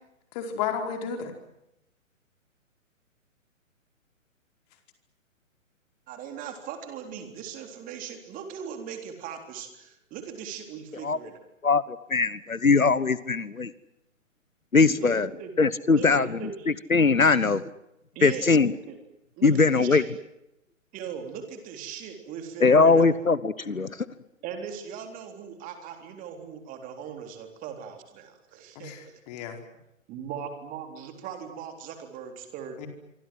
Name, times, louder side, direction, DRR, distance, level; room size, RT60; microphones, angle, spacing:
voice 1, 0.3-1.3 28.7-29.6 32.8-32.9, left 7 dB, 30° left, 5 dB, 4.9 m, -32 dB
voice 2, 6.1-11.4 14.9-15.5 15.8-16.7 18.2-19.0 19.3-20.1 20.9-23.1 24.4-28.9 30.1-32.9, right 7 dB, 20° right, 6 dB, 3.7 m, -39 dB
voice 3, 11.6-13.7 14.7-15.3 15.6-16.3 16.9-17.6 18.2-18.7 19.4-20.0 22.6-24.0, left 4 dB, 85° left, 18 dB, 1.3 m, -21 dB
26.5 x 25.0 x 7.7 m, 0.87 s
figure-of-eight pair, 130°, 40 cm